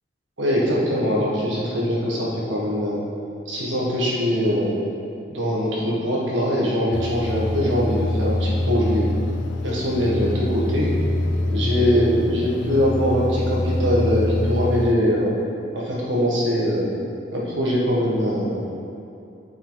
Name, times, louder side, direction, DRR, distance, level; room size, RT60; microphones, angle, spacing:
voice 1, 0.4-3.0 3.5-4.7 5.3-9.1 9.6-10.9 11.5-15.3 15.7-16.9 17.3-18.6, equal, 75° right, -5 dB, 1.7 m, -22 dB
sound 1, 6.9-14.9, left 1 dB, 75° left, 0.5 m, -25 dB
8.3 x 5.6 x 4.1 m, 2.7 s
head